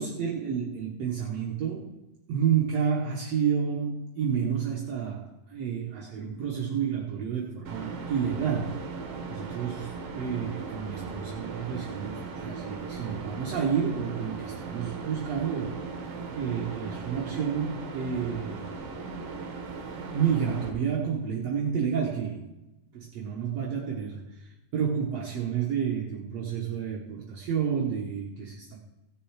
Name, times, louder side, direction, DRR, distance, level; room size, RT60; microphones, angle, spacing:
voice 1, 0.0-2.0 2.3-8.9 9.3-15.9 16.3-18.7 20.1-22.5 22.9-28.8, right 7 dB, 75° right, -2 dB, 1.5 m, -30 dB
sound 1, 7.6-20.7, right 4 dB, 55° right, 1.7 m, -38 dB
17.0 x 6.9 x 4.8 m, 0.99 s
omnidirectional pair, 4.7 m